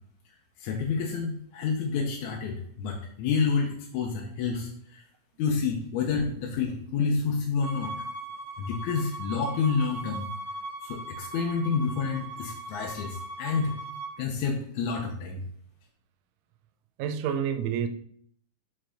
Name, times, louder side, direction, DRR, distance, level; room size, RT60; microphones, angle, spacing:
voice 1, 0.6-5.0 5.4-7.9 8.6-10.3 10.8-13.7 14.2-15.4, left 5 dB, 75° left, 2.0 m, -29 dB
Bowed string instrument, 7.6-14.1, right 1 dB, 40° right, 2.1 m, -39 dB
voice 2, 17.0-17.9, right 8 dB, 80° right, 2.1 m, -28 dB
6.2 x 4.6 x 4.9 m
omnidirectional pair, 3.8 m